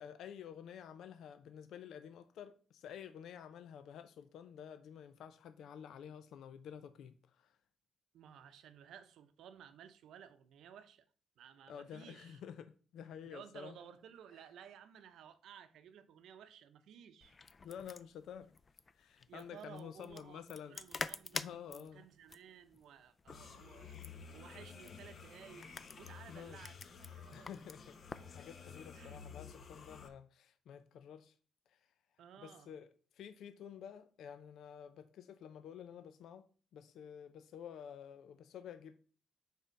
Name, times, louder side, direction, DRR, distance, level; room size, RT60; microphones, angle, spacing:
voice 1, 0.0-7.6 11.7-13.8 17.6-18.5 18.9-20.8 21.3-22.0 26.3-26.6 27.3-28.0 28.3-31.3 31.7-31.8 32.4-32.9 33.1-36.5 36.7-39.0, left 8 dB, 80° left, 0.5 m, -50 dB
voice 2, 8.1-11.1 11.4-12.4 13.2-17.4 19.3-24.0 24.3-25.7 26.0-27.6 28.9-29.2 32.2-32.7, right 9 dB, 90° right, 0.8 m, -56 dB
sound 1, 17.2-28.3, left 4 dB, 30° left, 0.4 m, -48 dB
sound 2, 23.3-30.1, left 6 dB, 50° left, 0.8 m, -53 dB
5.5 x 4.3 x 6.3 m
cardioid pair, 140°, 0 cm